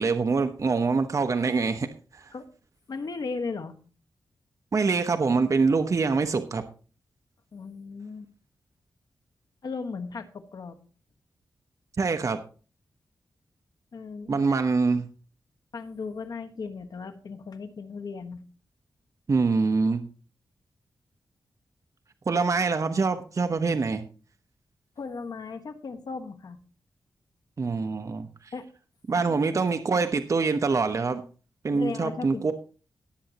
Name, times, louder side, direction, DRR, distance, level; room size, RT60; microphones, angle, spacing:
voice 1, 0.0-2.3 4.7-6.6 12.0-12.4 14.3-15.1 19.3-20.0 22.3-24.0 27.6-28.5 29.1-31.2 31.6-32.5, right 4 dB, 50° right, 7 dB, 1.0 m, -25 dB
voice 2, 2.9-3.7 7.5-8.3 9.6-10.8 13.9-14.3 15.7-18.4 25.0-26.6 28.5-28.6 29.3-29.4 31.7-32.5, left 4 dB, 65° left, 6 dB, 1.5 m, -36 dB
18.5 x 7.7 x 2.9 m, 0.37 s
wide cardioid pair, 85°, 7 cm